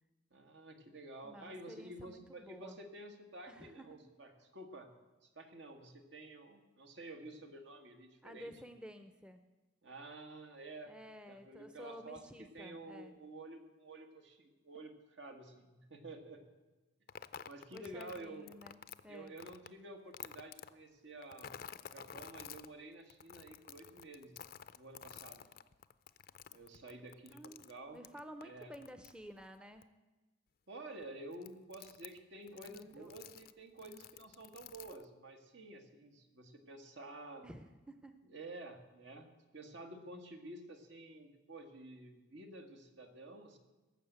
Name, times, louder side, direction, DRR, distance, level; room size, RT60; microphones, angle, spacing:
voice 1, 0.3-4.9 5.2-8.5 9.8-10.9 11.3-12.3 12.5-16.4 17.4-18.5 19.1-21.6 21.8-24.4 24.7-25.5 26.5-28.0 28.4-28.7 30.7-37.5 38.3-39.3 39.5-43.6, right 2 dB, 75° right, 5 dB, 1.6 m, -51 dB
voice 2, 1.2-2.8 3.5-4.0 8.2-9.4 10.9-13.2 17.7-18.8 19.0-19.3 27.3-27.7 27.9-29.9 32.5-33.1 37.4-38.2, equal, 5° right, 8 dB, 0.6 m, -52 dB
sound 1, 17.1-19.7 20.1-20.7 21.2-22.7 23.1-29.5 29.8-29.9 31.0-31.1 31.3-32.2 32.5-33.5 33.8-35.0, left 8 dB, 50° left, 0.4 m, -51 dB
18.0 x 7.2 x 8.0 m, 1.2 s
head